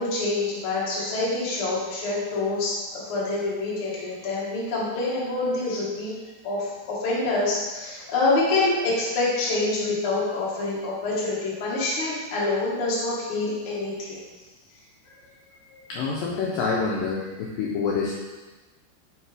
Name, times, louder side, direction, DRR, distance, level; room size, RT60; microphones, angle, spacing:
voice 1, 0.0-6.1 6.4-14.2, left 2 dB, 45° left, -6 dB, 1.9 m, -26 dB
voice 2, 15.9-18.1, left 4 dB, 80° left, -3 dB, 2.1 m, -27 dB
7.3 x 5.3 x 3.4 m, 1.2 s
omnidirectional pair, 4.7 m